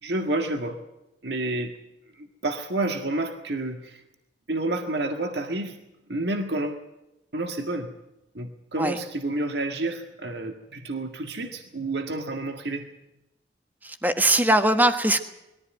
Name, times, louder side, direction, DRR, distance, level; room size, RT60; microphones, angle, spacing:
voice 1, 0.0-0.8 1.2-1.8 2.1-4.0 4.5-5.8 6.1-6.8 7.3-7.9 8.3-12.9, right 2 dB, 65° right, 5 dB, 1.8 m, -29 dB
voice 2, 13.8-15.2, right 1 dB, 10° right, 7 dB, 1.4 m, -21 dB
21.5 x 14.5 x 9.2 m, 0.93 s
head